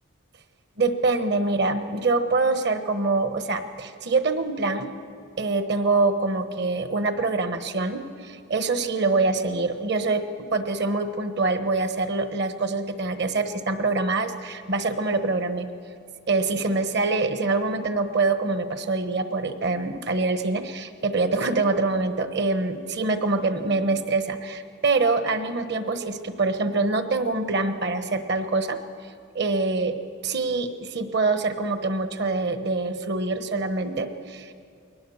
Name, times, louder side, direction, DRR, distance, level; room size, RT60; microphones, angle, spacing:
voice 1, 0.8-4.9 5.4-15.7 16.3-28.8 29.3-30.0 30.2-34.5, right 3 dB, 50° right, 10 dB, 1.2 m, -25 dB
21.5 x 19.0 x 7.1 m, 2.4 s
head